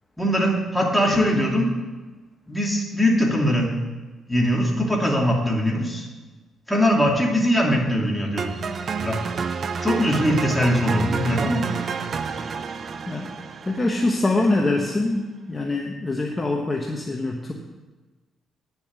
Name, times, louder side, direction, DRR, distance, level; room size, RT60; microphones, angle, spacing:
voice 1, 0.2-1.7 2.5-3.7 4.3-6.1 6.7-8.5 9.0-9.2 9.8-11.6, equal, 5° left, -2 dB, 2.8 m, -21 dB
sound 1, 8.4-14.5, right 5 dB, 50° right, 0.6 m, -29 dB
voice 2, 13.6-15.2 15.5-17.5, left 2 dB, 20° left, 0 dB, 1.2 m, -24 dB
10.0 x 7.2 x 7.6 m, 1.3 s
cardioid pair, 90°, 0 cm